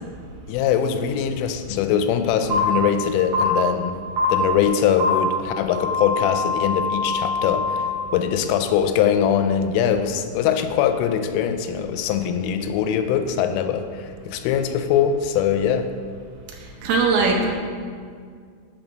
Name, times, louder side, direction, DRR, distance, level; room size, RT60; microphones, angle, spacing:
voice 1, 0.5-4.0 4.3-15.9, left 8 dB, 90° left, 8 dB, 3.1 m, -22 dB
sound 1, 2.5-2.6 3.3-3.4 4.2-4.3 5.0-5.1 5.7-7.9, left 2 dB, 50° right, 3.2 m, -24 dB
voice 2, 16.6-17.6, right 4 dB, 80° right, 0 dB, 2.3 m, -20 dB
6.9 x 6.1 x 5.1 m, 2.1 s
omnidirectional pair, 5.5 m